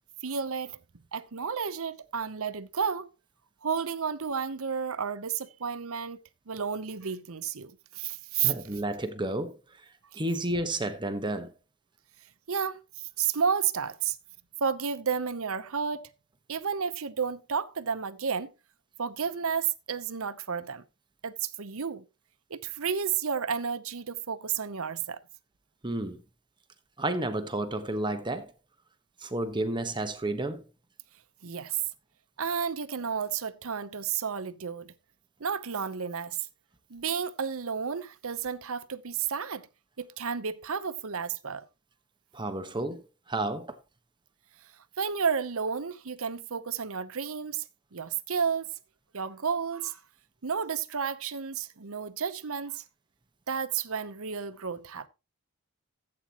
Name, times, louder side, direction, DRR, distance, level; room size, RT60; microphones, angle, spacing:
voice 1, 0.2-0.8 1.1-3.1 3.6-8.5 12.5-12.8 13.2-14.2 14.6-16.1 16.5-18.5 19.0-20.8 21.2-22.0 22.5-25.2 31.4-31.8 32.4-34.9 35.4-36.4 36.9-39.7 40.0-41.6 45.0-47.7 47.9-48.7 49.1-50.0 50.4-52.8 53.5-55.1, right 6 dB, 65° right, 0.9 m, -31 dB
voice 2, 8.4-9.9 10.1-11.5 25.8-26.2 27.0-28.5 29.2-30.7 42.3-43.8, right 1 dB, 20° right, 1.3 m, -31 dB
15.5 x 8.6 x 3.0 m
head